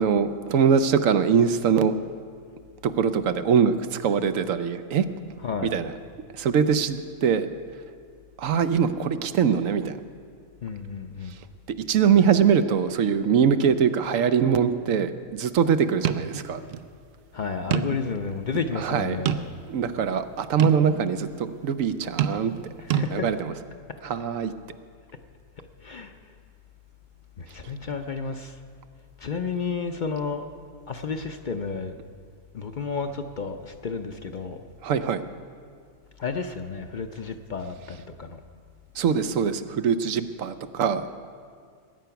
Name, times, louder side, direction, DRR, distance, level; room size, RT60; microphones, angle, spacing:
voice 1, 0.0-1.9 2.8-5.0 5.7-5.9 6.4-7.5 8.4-10.0 11.9-16.6 18.8-19.2 19.7-22.6 23.1-23.4 24.0-24.5 34.8-35.2 39.0-41.0, right 7 dB, 90° right, 10 dB, 1.1 m, -22 dB
voice 2, 5.4-5.7 10.6-11.4 17.3-19.5 22.8-23.4 23.9-24.0 25.6-26.3 27.4-28.6 29.2-30.5 30.9-32.0 32.5-34.7 36.2-38.4, left 5 dB, 50° left, 7 dB, 0.6 m, -32 dB
sound 1, 16.0-16.3 16.7-16.8 17.7-18.1 18.5-18.6 19.3-19.8 20.6-20.8 22.2-22.6 22.9-23.1, right 9 dB, 60° right, 0.7 m, -26 dB
20.5 x 9.2 x 5.8 m, 2.1 s
omnidirectional pair, 1.3 m